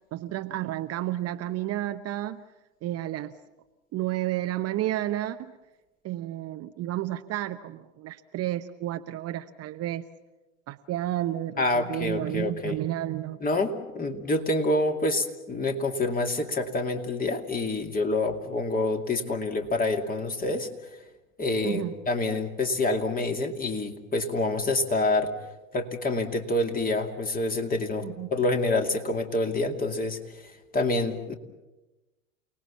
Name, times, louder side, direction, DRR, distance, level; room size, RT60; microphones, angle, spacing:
voice 1, 0.1-2.4 2.8-3.3 3.9-5.5 6.0-10.0 10.7-13.4 21.6-21.9 28.0-28.3, right 14 dB, 35° right, 8 dB, 0.9 m, -31 dB
voice 2, 11.6-12.8 13.4-20.7 21.4-25.3 25.7-30.2 30.7-31.3, left 2 dB, 20° left, 4 dB, 2.6 m, -27 dB
29.0 x 19.0 x 7.3 m, 1.1 s
hypercardioid pair, 85°, 40 cm